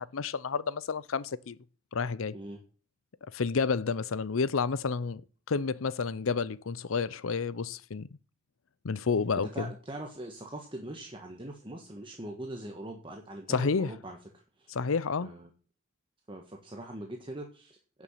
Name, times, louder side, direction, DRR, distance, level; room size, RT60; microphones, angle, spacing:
voice 1, 0.0-1.6 1.9-2.4 3.3-5.2 5.5-8.1 8.8-9.7 13.5-13.9 14.7-15.3, left 5 dB, 80° left, 0.6 m, -30 dB
voice 2, 9.4-14.7 15.2-15.5 16.3-18.0, right 1 dB, 25° right, 1.5 m, -42 dB
10.5 x 7.0 x 7.5 m
head